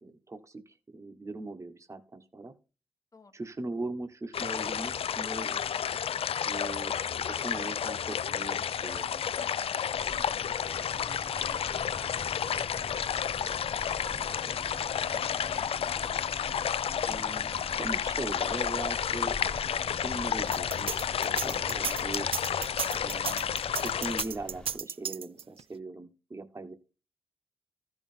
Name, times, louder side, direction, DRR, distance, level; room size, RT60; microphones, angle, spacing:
voice 1, 0.0-2.5 3.3-5.6 6.5-9.5 17.1-19.4 20.0-22.3 23.0-26.7, right 2 dB, 30° right, 7 dB, 1.2 m, -40 dB
sound 1, 4.3-24.2, left 8 dB, 80° left, 0.4 m, -31 dB
sound 2, 9.9-24.8, left 1 dB, 10° left, 1.2 m, -46 dB
voice 2, 10.1-12.9 13.3-13.7 14.0-16.2 17.5-17.9, left 3 dB, 35° left, 8 dB, 1.2 m, -53 dB
sound 3, 20.5-25.6, right 7 dB, 70° right, 0.5 m, -34 dB
13.5 x 5.3 x 4.4 m, 0.32 s
wide cardioid pair, 100°, 10 cm